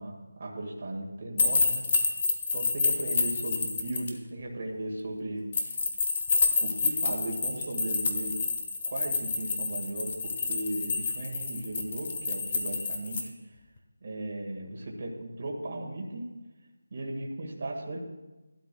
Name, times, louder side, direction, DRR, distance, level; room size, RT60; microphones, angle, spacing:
voice 1, 0.0-1.9 2.5-5.8 6.6-8.4 8.9-13.3 14.0-16.3 16.9-18.0, right 1 dB, 45° right, -1 dB, 1.7 m, -36 dB
sound 1, 1.4-4.1 5.5-13.2, left 4 dB, 35° left, 1.1 m, -28 dB
14.5 x 12.0 x 2.3 m, 1.1 s
figure-of-eight pair, 165°, 0 cm